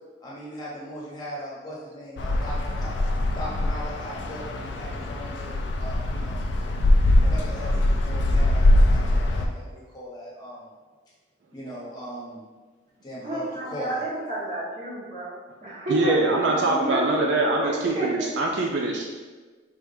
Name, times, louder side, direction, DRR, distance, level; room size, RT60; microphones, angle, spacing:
voice 1, 0.2-3.0 3.3-6.5 7.2-10.7 11.5-12.4 13.0-14.0, equal, 20° left, -7 dB, 1.1 m, -38 dB
sound 1, 2.2-9.5, left 1 dB, 60° left, 0.4 m, -22 dB
voice 2, 13.2-15.4 15.6-18.3, right 1 dB, 40° right, -9 dB, 1.5 m, -30 dB
voice 3, 15.9-19.1, right 2 dB, 60° right, 0 dB, 0.4 m, -23 dB
4.5 x 3.6 x 2.7 m, 1.4 s
head